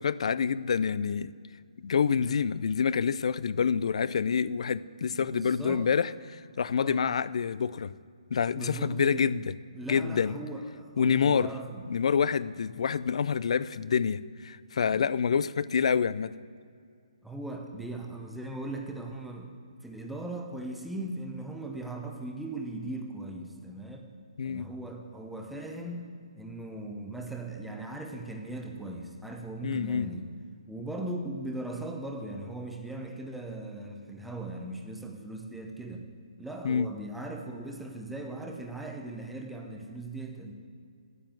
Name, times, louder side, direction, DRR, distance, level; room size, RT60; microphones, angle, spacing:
voice 1, 0.0-1.3 1.8-7.9 8.3-9.5 9.9-10.4 11.0-11.5 11.9-16.4 24.4-24.7 29.6-30.1 36.6-36.9, left 6 dB, 60° left, 18 dB, 0.3 m, -27 dB
voice 2, 5.1-5.9 6.7-7.1 8.5-9.3 9.7-11.8 17.2-19.5 19.8-24.1 24.4-30.3 30.7-36.1 36.4-40.5, right 2 dB, ahead, 1 dB, 0.7 m, -39 dB
9.5 x 7.5 x 7.6 m, 2.2 s
hypercardioid pair, 155°, 4 cm